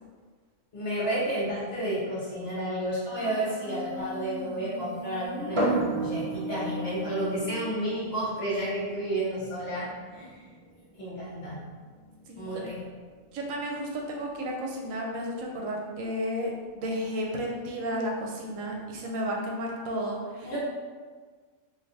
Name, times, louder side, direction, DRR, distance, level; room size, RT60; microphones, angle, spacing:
voice 1, 0.7-10.4 11.0-11.6 12.3-12.8 20.4-20.6, right 1 dB, 50° left, -8 dB, 1.3 m, -31 dB
Human voice, 3.2-8.1, right 2 dB, 70° left, 1.0 m, -38 dB
sound 1, 5.5-19.0, right 1 dB, 55° right, 0.3 m, -38 dB
voice 2, 12.3-12.7 13.3-20.6, equal, 75° right, -1 dB, 0.9 m, -33 dB
3.2 x 2.7 x 2.6 m, 1.5 s
omnidirectional pair, 1.4 m